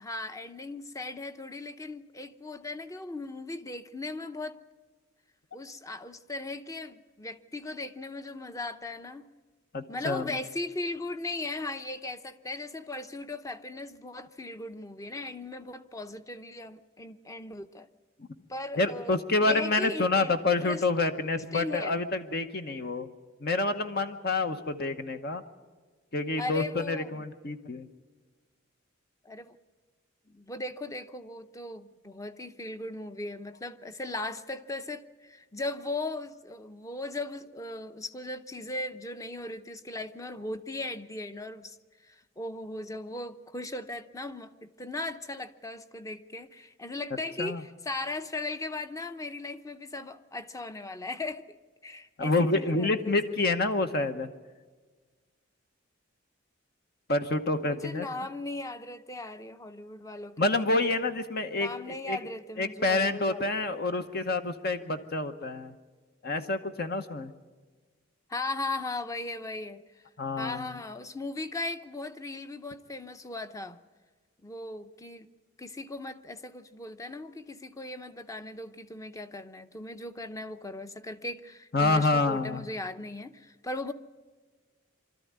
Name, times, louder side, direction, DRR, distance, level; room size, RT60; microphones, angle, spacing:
voice 1, 0.0-4.6 5.5-9.3 9.9-17.9 18.5-19.1 19.4-20.8 21.5-22.0 26.4-27.2 29.2-29.6 30.3-41.8 42.0-51.5 51.8-53.1 53.4-53.9 57.6-60.5 61.5-63.7 68.3-70.0 70.4-73.8 74.4-75.3 75.6-83.9, left 2 dB, 15° left, 0.7 m, -38 dB
voice 2, 9.7-10.3 18.8-23.1 23.4-25.4 26.1-27.9 47.4-47.6 52.2-54.3 57.1-58.1 60.4-62.2 62.6-65.7 66.2-67.3 70.2-70.7 81.7-82.6, left 2 dB, 50° left, 1.0 m, -28 dB
25.0 x 13.5 x 9.5 m
head